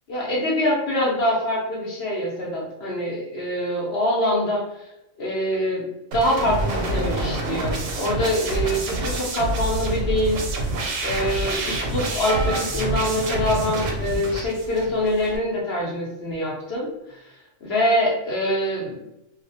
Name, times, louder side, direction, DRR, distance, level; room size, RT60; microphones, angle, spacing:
voice 1, 0.1-4.8 5.2-5.9 6.1-10.7 11.0-19.0, equal, 60° left, -3 dB, 0.8 m, -25 dB
sound 1, 6.1-15.4, right 2 dB, 85° right, 1.0 m, -27 dB
sound 2, 12.2-14.0 14.8-15.0 16.3-16.4, right 1 dB, 30° right, 0.7 m, -33 dB
2.4 x 2.0 x 2.7 m, 0.87 s
omnidirectional pair, 1.3 m